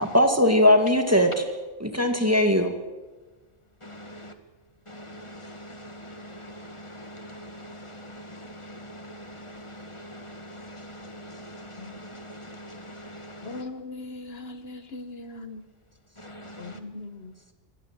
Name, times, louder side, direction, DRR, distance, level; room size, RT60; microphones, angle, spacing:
voice 1, 0.0-1.4 1.8-2.7, left 1 dB, 15° right, 1.9 m, -20 dB
voice 2, 3.8-4.3 4.9-13.6 16.2-16.8, equal, 25° left, 1.9 m, -43 dB
voice 3, 13.4-15.6 16.6-17.5, left 2 dB, 60° left, 1.4 m, -39 dB
24.5 x 17.5 x 7.4 m
omnidirectional pair, 1.2 m